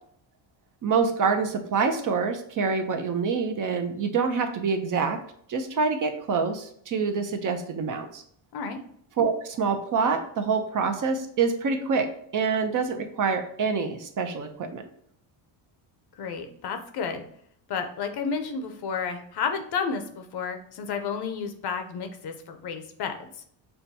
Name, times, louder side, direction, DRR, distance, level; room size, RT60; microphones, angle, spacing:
voice 1, 0.8-5.2 5.5-8.2 9.2-14.8, right 5 dB, 40° right, 6 dB, 0.6 m, -26 dB
voice 2, 16.2-17.2 17.7-23.4, left 5 dB, 55° left, 6 dB, 0.7 m, -31 dB
5.6 x 2.2 x 2.7 m, 0.65 s
cardioid pair, 95°, 48 cm